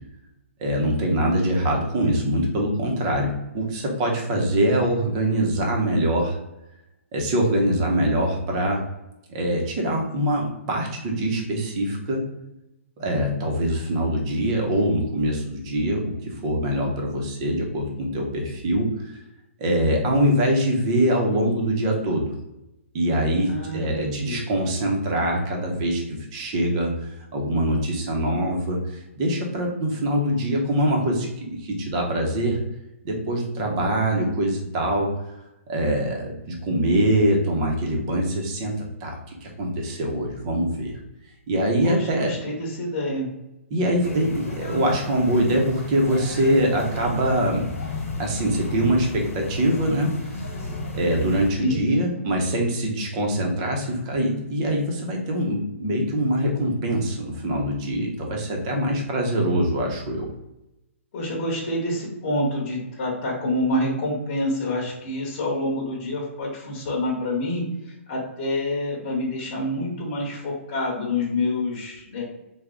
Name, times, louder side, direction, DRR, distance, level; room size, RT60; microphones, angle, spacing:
voice 1, 0.6-6.4 7.1-8.8 9.3-12.3 13.0-18.9 19.6-22.3 22.9-26.9 27.3-32.6 33.0-35.1 35.7-40.9 41.5-42.3 43.7-47.7 48.2-50.4 50.9-60.3, right 1 dB, 25° right, 1 dB, 0.6 m, -23 dB
voice 2, 23.5-24.4 41.8-43.3 51.6-51.8 61.1-72.2, left 1 dB, 25° left, -4 dB, 1.0 m, -27 dB
sound 1, 44.0-51.5, left 2 dB, 80° left, 1.2 m, -33 dB
3.4 x 2.1 x 3.6 m, 0.91 s
hypercardioid pair, 170°, 7 cm